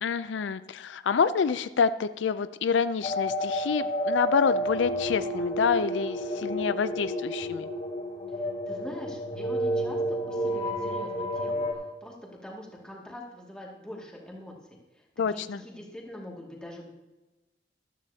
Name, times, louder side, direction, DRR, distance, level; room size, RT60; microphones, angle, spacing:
voice 1, 0.0-7.7 15.2-15.6, left 6 dB, 80° left, 13 dB, 0.4 m, -27 dB
sound 1, 3.0-11.7, equal, 35° left, 3.0 m, -30 dB
voice 2, 8.7-11.7 12.0-12.1 12.4-15.0 15.3-16.9, left 1 dB, 5° left, -3 dB, 2.2 m, -43 dB
14.0 x 13.0 x 2.8 m, 1.1 s
head